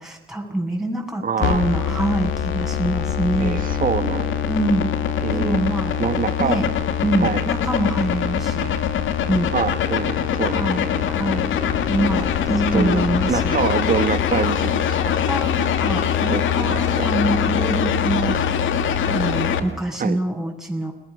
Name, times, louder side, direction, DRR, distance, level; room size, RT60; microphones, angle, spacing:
voice 1, 0.0-3.6 4.5-4.9 5.3-5.9 6.4-6.7 7.0-8.7 9.3-9.5 10.5-11.5 11.8-13.6 15.3-18.4 19.0-20.9, right 1 dB, ahead, -1 dB, 8.0 m, -25 dB
voice 2, 1.2-1.7 3.4-4.5 5.2-5.6 6.0-6.6 7.2-7.4 9.5-11.0 11.3-11.4 12.7-15.2 16.2-17.1 20.0-20.2, right 6 dB, 45° right, 10 dB, 1.9 m, -25 dB
sound 1, 1.4-19.6, left 8 dB, 75° left, 2.3 m, -23 dB
30.0 x 21.0 x 6.7 m, 0.80 s
cardioid pair, 90°, 20 cm